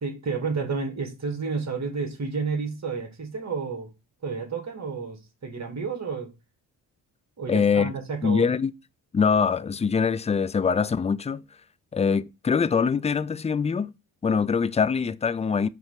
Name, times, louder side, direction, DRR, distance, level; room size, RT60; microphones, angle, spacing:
voice 1, 0.0-3.9 4.2-6.3 7.4-8.5, right 4 dB, 35° right, 2.2 m, -31 dB
voice 2, 7.5-7.9 8.2-8.7 9.1-11.4 11.9-13.9 14.2-15.7, left 6 dB, 15° left, 0.3 m, -23 dB
5.7 x 3.3 x 5.8 m
supercardioid pair, 55°, 45 cm